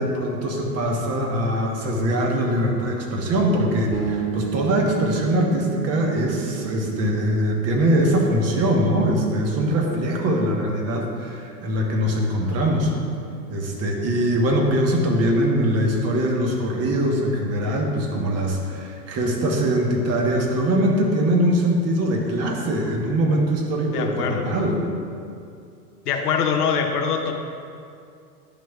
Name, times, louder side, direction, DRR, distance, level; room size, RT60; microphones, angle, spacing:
voice 1, 0.0-12.9 13.5-24.8, equal, 30° right, 0 dB, 1.1 m, -22 dB
sound 1, 3.9-13.5, right 10 dB, 60° right, 0.9 m, -34 dB
voice 2, 23.9-24.5 26.1-27.3, left 6 dB, 70° left, 4 dB, 0.9 m, -23 dB
10.5 x 6.2 x 2.3 m, 2.4 s
hypercardioid pair, 95°, 48 cm